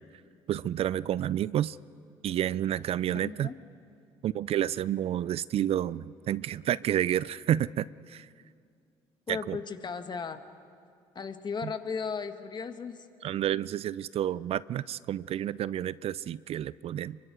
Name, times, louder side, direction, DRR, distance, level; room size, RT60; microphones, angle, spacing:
voice 1, 0.5-1.8 2.2-3.5 4.2-8.3 9.3-9.6 11.6-11.7 13.2-17.2, right 11 dB, 55° right, 20 dB, 0.5 m, -30 dB
voice 2, 3.1-3.6 9.3-10.4 11.2-13.1, left 5 dB, 40° left, 8 dB, 1.7 m, -36 dB
25.0 x 23.5 x 6.2 m, 2.4 s
supercardioid pair, 65°, 12 cm